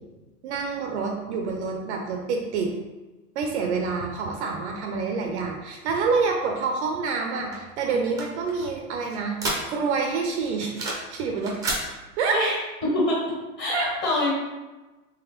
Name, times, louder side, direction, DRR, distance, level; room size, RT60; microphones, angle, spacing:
voice 1, 0.4-2.7 3.4-9.4 9.7-11.6 12.2-12.4 13.7-13.9, right 4 dB, 50° right, 2 dB, 0.6 m, -27 dB
sound 1, 7.5-10.0 10.3-11.1 11.4-11.8, right 2 dB, 10° right, 0.6 m, -31 dB
voice 2, 12.8-13.2 13.6-14.3, left 1 dB, 25° left, -5 dB, 1.3 m, -24 dB
3.9 x 3.1 x 3.0 m, 1.1 s
hypercardioid pair, 135°, 47 cm